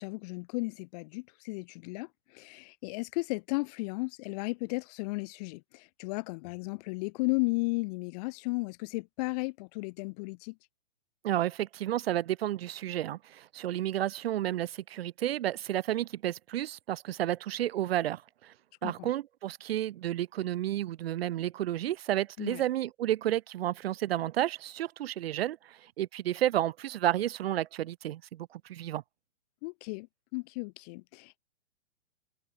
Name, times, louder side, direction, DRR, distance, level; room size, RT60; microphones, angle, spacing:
voice 1, 0.0-10.5 18.8-19.1 22.4-22.6 29.6-30.1 30.3-31.4, left 27 dB, 35° left, 1.1 m, -34 dB
voice 2, 11.2-18.5 18.8-29.0, right 13 dB, 60° right, 0.6 m, -31 dB
hypercardioid pair, 125°, 34 cm